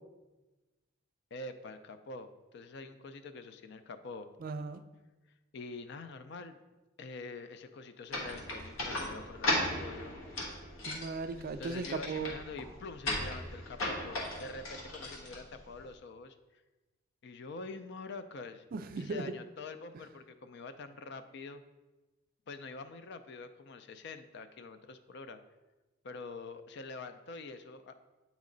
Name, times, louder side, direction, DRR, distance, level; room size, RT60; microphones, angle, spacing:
voice 1, 1.3-4.3 5.5-6.6 7.0-10.2 11.6-16.6 17.2-18.6 19.0-21.6 22.5-25.4 26.0-28.0, left 3 dB, 55° left, 10 dB, 0.4 m, -45 dB
voice 2, 4.4-4.8 10.9-12.4 18.7-19.2, right 4 dB, 45° right, 10 dB, 0.3 m, -37 dB
sound 1, 8.1-15.9, left 1 dB, 85° left, 1.3 m, -37 dB
8.2 x 3.1 x 3.8 m, 1.1 s
head